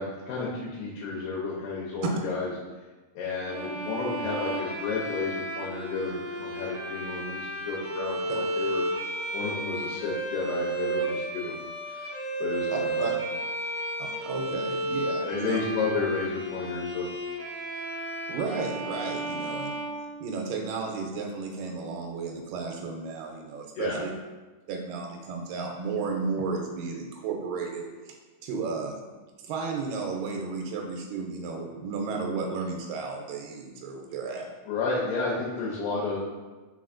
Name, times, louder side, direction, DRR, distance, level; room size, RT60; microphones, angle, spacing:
voice 1, 0.0-2.5 3.2-8.8 9.3-11.6 11.8-12.1 12.4-13.1 15.3-17.1 23.8-24.0 34.7-36.2, left 4 dB, 85° left, -4 dB, 2.4 m, -31 dB
Bowed string instrument, 3.4-20.7, right 1 dB, 50° right, 1.7 m, -33 dB
voice 2, 12.7-13.1 14.0-15.6 18.3-19.7 20.2-24.1 24.7-28.1 28.4-29.0 29.4-34.5, right 4 dB, 90° right, 1 dB, 2.3 m, -33 dB
4.4 x 4.2 x 2.5 m, 1.2 s
omnidirectional pair, 3.8 m